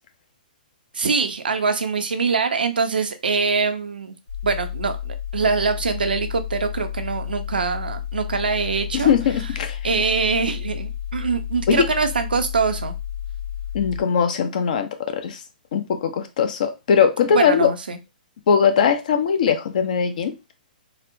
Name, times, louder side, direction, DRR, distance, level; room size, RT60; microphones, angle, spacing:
voice 1, 0.9-4.1 4.4-9.1 9.8-13.0 17.3-18.0, right 5 dB, 85° right, 0.6 m, -23 dB
sound 1, 4.3-14.0, left 10 dB, 85° left, 1.2 m, -31 dB
voice 2, 8.9-9.8 11.7-11.9 13.7-15.4 15.7-17.7 18.5-20.3, left 7 dB, 60° left, 0.6 m, -20 dB
4.1 x 2.1 x 2.6 m
hypercardioid pair, 130°, 5 cm